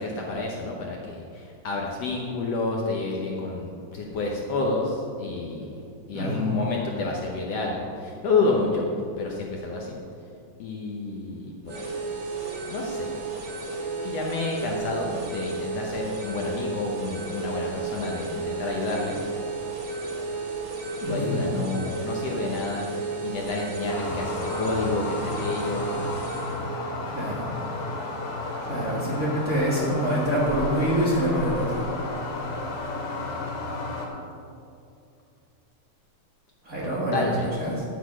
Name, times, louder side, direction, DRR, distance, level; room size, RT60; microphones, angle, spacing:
voice 1, 0.0-5.8 6.1-8.9 9.2-10.0 10.6-11.8 12.2-13.1 14.0-19.2 21.0-22.8 23.2-25.9 36.8-37.5, left 3 dB, 65° left, -1 dB, 1.9 m, -29 dB
voice 2, 6.1-6.5 21.0-21.5 27.1-27.5 28.7-31.8 36.6-37.8, right 1 dB, 30° right, -6 dB, 1.9 m, -26 dB
sound 1, 11.7-26.6, right 3 dB, 70° right, 3.6 m, -33 dB
sound 2, 23.9-34.1, left 2 dB, 85° left, 3.4 m, -32 dB
9.9 x 8.3 x 6.2 m, 2.5 s
omnidirectional pair, 3.6 m